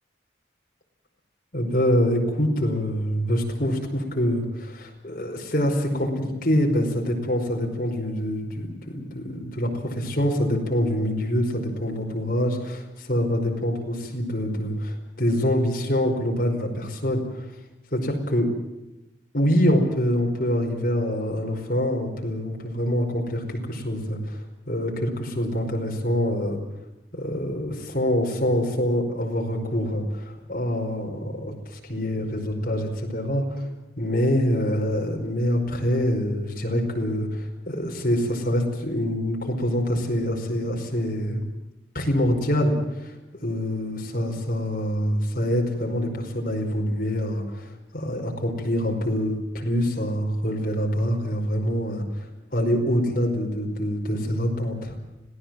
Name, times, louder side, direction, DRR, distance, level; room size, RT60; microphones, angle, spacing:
voice 1, 1.5-17.5 17.9-18.5 19.3-26.6 27.1-33.6 34.0-41.4 41.9-43.1 43.4-52.3 52.5-55.0, equal, 50° left, 1 dB, 5.2 m, -25 dB
26.0 x 17.5 x 7.8 m, 0.96 s
head